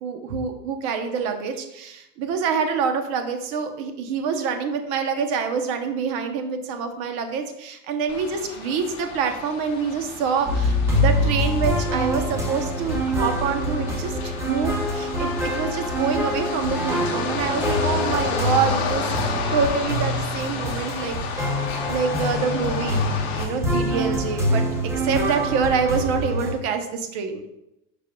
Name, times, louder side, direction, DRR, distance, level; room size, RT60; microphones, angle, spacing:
voice 1, 0.0-14.1 14.5-19.0 19.5-27.4, right 6 dB, 40° right, 6 dB, 0.8 m, -26 dB
sound 1, 8.1-23.5, left 5 dB, 50° left, 1.5 m, -32 dB
sound 2, 10.5-26.5, equal, 5° right, 0.4 m, -25 dB
9.9 x 5.3 x 2.3 m, 0.87 s
supercardioid pair, 175°, 39 cm